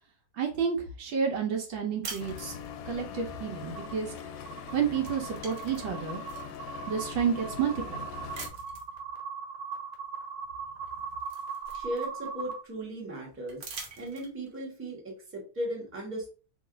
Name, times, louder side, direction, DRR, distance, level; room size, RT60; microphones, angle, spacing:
voice 1, 0.4-2.6 2.9-4.1 4.7-6.2 6.9-8.1, right 7 dB, 70° right, 2 dB, 1.4 m, -30 dB
sound 1, 2.0-3.0 4.4-4.7 5.0-6.6 7.2-7.3 8.3-8.9 10.4-10.5 10.9-12.4 13.5-14.6, right 4 dB, 55° right, 1.2 m, -44 dB
sound 2, 2.2-8.5, left 8 dB, 75° left, 1.2 m, -42 dB
sound 3, 3.8-3.9 4.5-12.6, right 6 dB, 90° right, 1.7 m, -39 dB
voice 2, 11.7-13.6 14.0-16.3, right 1 dB, 10° right, -2 dB, 0.9 m, -37 dB
3.1 x 2.9 x 3.8 m, 0.36 s
omnidirectional pair, 2.3 m